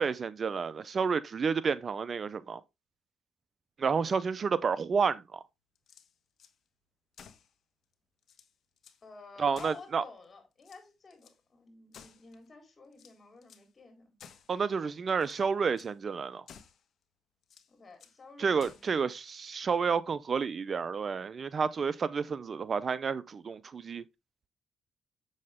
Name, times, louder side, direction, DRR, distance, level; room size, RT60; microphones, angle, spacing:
voice 1, 0.0-2.6 3.8-5.4 9.4-10.0 14.5-16.4 18.4-24.0, right 5 dB, 45° right, 0.6 m, -30 dB
sound 1, 5.8-6.6 7.1-7.5 7.9-8.0 8.2-9.0 9.5-10.3 10.6-11.4 11.9-12.5 12.9-13.7 14.2-14.6 15.1-15.4 15.8-16.0 16.5-16.9 17.4-18.2 18.6-19.0, left 7 dB, 60° left, 1.3 m, -55 dB
voice 2, 9.0-14.1 17.7-19.0, left 3 dB, 35° left, 4.0 m, -51 dB
7.5 x 6.4 x 3.6 m
cardioid pair, 90°, 0 cm